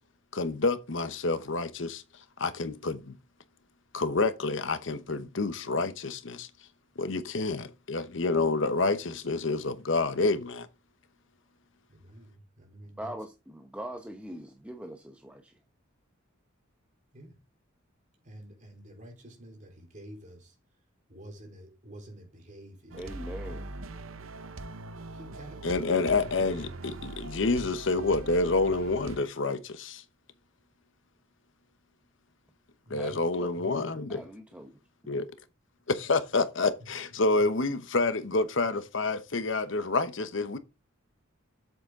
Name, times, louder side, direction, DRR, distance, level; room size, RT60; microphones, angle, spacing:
voice 1, 0.3-2.0 2.4-3.1 3.9-6.5 7.0-10.7 25.6-30.0 32.9-34.2 35.1-35.3 35.9-40.6, left 3 dB, 65° left, 0.9 m, -28 dB
voice 2, 11.9-13.1 17.1-17.4 18.2-20.5 21.1-23.0 25.1-25.7 26.2-26.7 32.9-33.2 33.6-34.1 37.3-37.4, right 1 dB, 40° right, 3.7 m, -49 dB
voice 3, 13.0-15.5 22.9-23.6 33.0-33.1 33.4-33.6 34.1-34.8, right 1 dB, 5° right, 0.9 m, -41 dB
sound 1, 22.9-29.2, right 2 dB, 80° right, 0.8 m, -42 dB
8.0 x 7.8 x 3.7 m
head